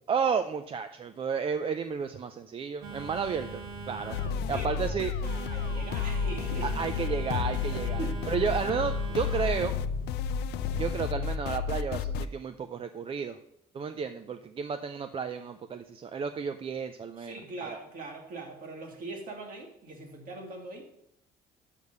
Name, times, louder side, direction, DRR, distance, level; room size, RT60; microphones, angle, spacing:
voice 1, 0.1-3.6 3.9-4.2 4.5-5.1 6.6-8.0 8.3-9.7 10.7-13.4 13.7-17.8, right 6 dB, 35° right, 9 dB, 0.4 m, -32 dB
Telephone, 2.8-11.0, right 3 dB, 85° right, 1.6 m, -41 dB
sound 1, 4.1-12.3, left 6 dB, 80° left, 0.4 m, -31 dB
voice 2, 4.5-4.9 5.5-6.7 7.7-8.2 8.6-8.7 17.2-20.9, right 2 dB, 55° right, 2 dB, 2.1 m, -41 dB
6.6 x 5.3 x 6.6 m, 0.74 s
cardioid pair, 110°, 17 cm